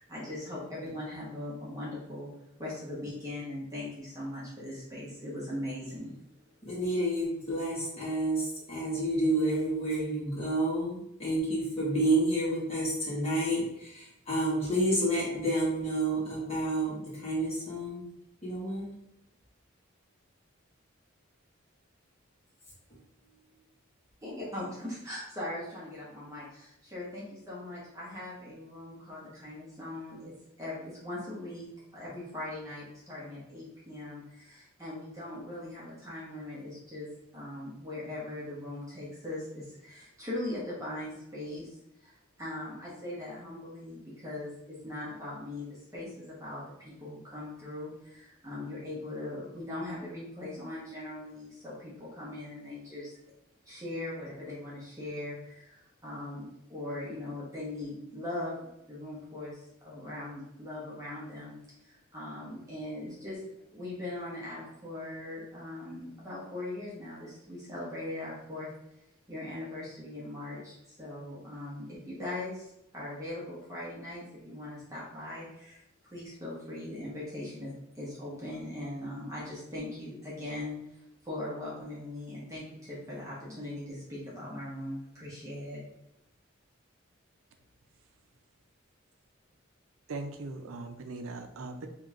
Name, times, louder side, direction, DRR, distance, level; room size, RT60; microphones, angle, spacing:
voice 1, 0.0-2.3 2.6-6.1 24.2-53.2 53.6-61.5 61.8-63.4 63.7-68.7 69.3-75.8 76.1-85.8, left 1 dB, 15° right, -8 dB, 1.1 m, -40 dB
voice 2, 6.6-18.1 18.4-18.9, right 1 dB, 30° left, -6 dB, 1.4 m, -29 dB
voice 3, 90.1-91.9, right 3 dB, 85° right, 6 dB, 0.5 m, -39 dB
5.2 x 2.8 x 2.5 m, 0.80 s
head